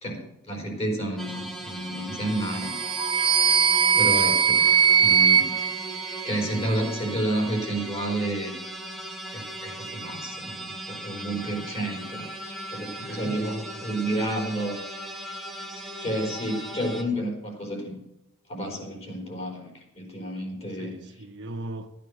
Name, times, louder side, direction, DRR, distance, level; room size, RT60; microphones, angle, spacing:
voice 1, 0.0-2.7 3.1-3.5 3.9-4.6 5.0-5.5 6.2-8.5 9.3-12.3 12.7-14.8 15.7-18.0 18.5-20.9, right 1 dB, 30° left, 4.3 m, -30 dB
sound 1, 1.2-17.0, right 1 dB, ahead, 1.6 m, -38 dB
sound 2, 2.4-6.7, right 7 dB, 25° right, 0.5 m, -21 dB
voice 2, 3.9-4.3 11.4-11.5 12.9-13.5 16.1-16.4 20.7-21.9, right 2 dB, 55° right, 1.4 m, -39 dB
13.5 x 9.2 x 6.6 m
head